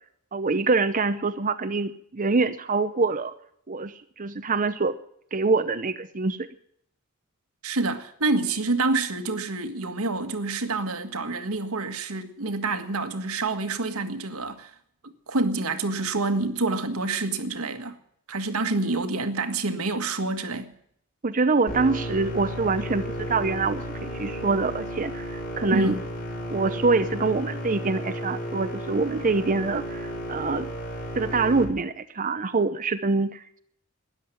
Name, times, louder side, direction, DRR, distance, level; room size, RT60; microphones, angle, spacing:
voice 1, 0.3-3.3 3.7-5.0 5.3-6.4 21.2-26.0 26.5-30.7 31.1-33.6, right 3 dB, 40° right, 0.7 m, -25 dB
voice 2, 7.6-14.7 15.3-18.0 18.3-20.7 25.7-26.0, right 3 dB, 85° right, 1.7 m, -27 dB
sound 1, 21.7-31.7, equal, 45° left, 4.9 m, -33 dB
13.0 x 10.5 x 9.1 m
head